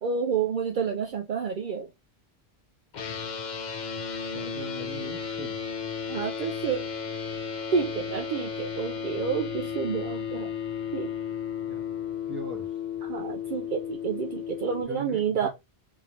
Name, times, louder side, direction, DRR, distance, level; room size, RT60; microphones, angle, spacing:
voice 1, 0.0-1.9 6.1-6.8 7.7-10.5 10.9-11.1 13.0-15.5, right 6 dB, 60° right, 0.6 m, -29 dB
sound 1, 2.9-14.8, left 7 dB, 50° left, 0.7 m, -34 dB
voice 2, 4.3-5.6 11.7-11.8 12.3-12.7 14.9-15.5, right 1 dB, 10° right, 0.8 m, -40 dB
3.7 x 2.7 x 3.0 m
omnidirectional pair, 1.1 m